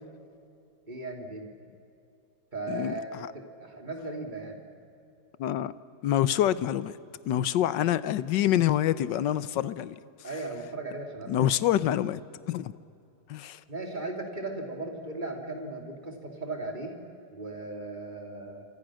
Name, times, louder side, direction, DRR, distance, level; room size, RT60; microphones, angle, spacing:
voice 1, 0.9-1.5 2.5-4.6 10.2-11.3 13.7-17.0 17.3-18.6, right 2 dB, 25° right, 2 dB, 3.1 m, -37 dB
voice 2, 2.7-3.3 5.4-5.7 6.0-6.9 7.3-10.0 11.3-12.2 12.5-12.7 13.3-13.6, left 11 dB, 70° left, 16 dB, 1.4 m, -26 dB
27.5 x 26.5 x 6.3 m, 2.6 s
omnidirectional pair, 2.1 m